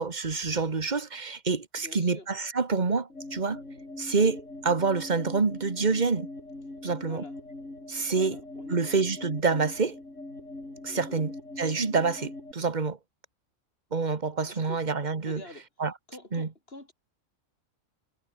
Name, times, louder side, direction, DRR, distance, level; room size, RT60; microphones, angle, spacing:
voice 1, 0.0-3.6 4.0-6.3 6.8-7.2 7.9-8.4 8.7-10.0 10.8-11.3 11.6-13.0 13.9-15.4 15.8-15.9 16.3-16.5, right 4 dB, 35° right, 1.6 m, -27 dB
voice 2, 1.8-2.3 6.9-7.3 8.0-9.0 10.9-11.2 14.5-14.8 15.3-15.6 16.1-16.9, left 2 dB, 45° left, 4.9 m, -47 dB
sound 1, 3.1-12.5, left 2 dB, 65° left, 6.1 m, -42 dB
omnidirectional pair, 1.4 m